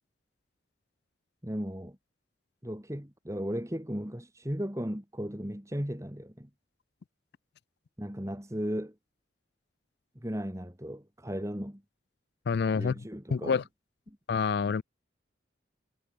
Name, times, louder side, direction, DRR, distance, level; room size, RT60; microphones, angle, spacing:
voice 1, 1.4-2.0 2.6-6.5 8.0-8.9 10.2-11.8 12.8-13.6 14.1-14.2, equal, 15° right, 2.7 m, -36 dB
voice 2, 12.5-13.0 13.3-13.6 14.3-14.8, left 5 dB, 60° left, 0.4 m, -27 dB
head